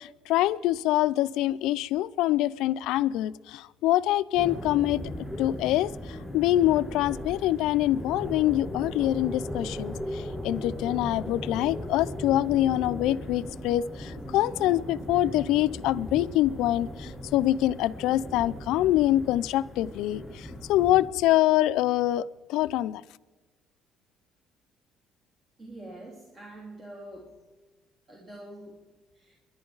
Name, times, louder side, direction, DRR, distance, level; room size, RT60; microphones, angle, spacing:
voice 1, 0.0-5.0 5.4-23.0, left 14 dB, 85° left, 0.4 m, -25 dB
sound 1, 4.3-21.1, left 1 dB, ahead, 4.0 m, -38 dB
voice 2, 25.6-27.5 28.1-29.3, right 1 dB, 30° right, 2.6 m, -45 dB
29.5 x 11.0 x 3.9 m
cardioid pair, 125°, 0 cm